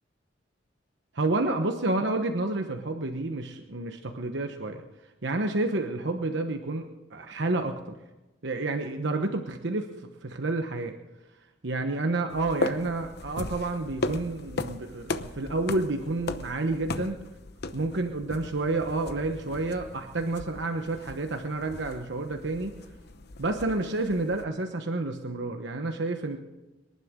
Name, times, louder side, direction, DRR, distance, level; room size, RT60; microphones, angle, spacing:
voice 1, 1.1-4.8 5.2-8.0 8.4-11.0 11.6-17.2 17.7-22.7 23.4-26.4, right 2 dB, 70° right, 5 dB, 1.1 m, -30 dB
sound 1, 12.3-24.5, left 2 dB, 60° left, 0.8 m, -37 dB
25.5 x 11.0 x 3.8 m, 1.1 s
head